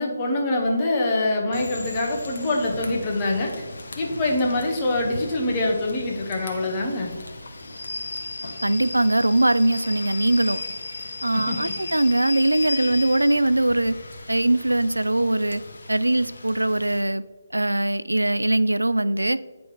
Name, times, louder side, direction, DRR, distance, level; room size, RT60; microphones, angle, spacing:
voice 1, 0.0-3.5 4.0-7.1 11.3-11.6, left 2 dB, 25° left, -1 dB, 1.5 m, -24 dB
Rain / Train, 1.5-17.0, left 2 dB, 60° left, 1.1 m, -36 dB
voice 2, 8.6-10.6 11.2-14.0 14.3-15.6 15.9-17.2 17.5-19.4, right 1 dB, 85° right, 15 dB, 0.3 m, -21 dB
9.6 x 5.1 x 3.3 m, 1.3 s
figure-of-eight pair, 150°, 0 cm